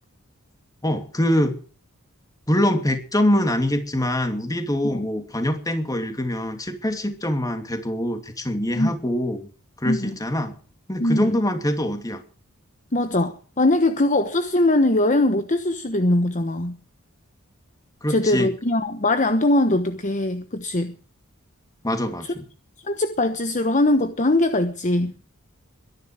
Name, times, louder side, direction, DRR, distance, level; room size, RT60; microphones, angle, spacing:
voice 1, 0.8-1.6 2.5-9.5 9.8-10.5 10.9-12.2 18.0-18.5 21.8-22.4, left 1 dB, 15° left, 2.7 m, -24 dB
voice 2, 9.9-10.2 11.0-11.3 12.9-16.8 18.1-20.9 22.8-25.1, left 1 dB, 35° left, 1.1 m, -21 dB
22.5 x 11.0 x 5.0 m
head